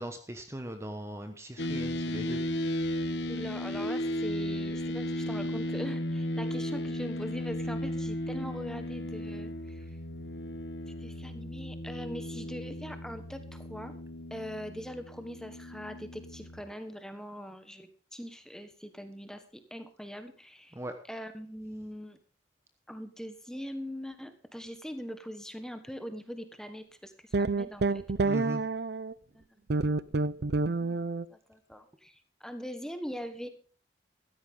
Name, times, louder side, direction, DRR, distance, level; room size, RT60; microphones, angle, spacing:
voice 1, 0.0-2.4 20.7-20.9 28.2-28.6, right 1 dB, 15° right, 6 dB, 1.1 m, -39 dB
sound 1, 1.6-16.6, left 1 dB, 70° left, 1.3 m, -35 dB
voice 2, 3.3-10.0 10.9-14.0 14.3-20.8 21.1-22.2 22.9-28.4 29.3-29.5 30.8-31.0 31.3-33.5, equal, 5° left, 8 dB, 1.4 m, -42 dB
sound 2, 27.3-29.1 29.7-31.2, right 3 dB, 60° right, 0.5 m, -28 dB
15.5 x 13.5 x 3.8 m, 0.41 s
head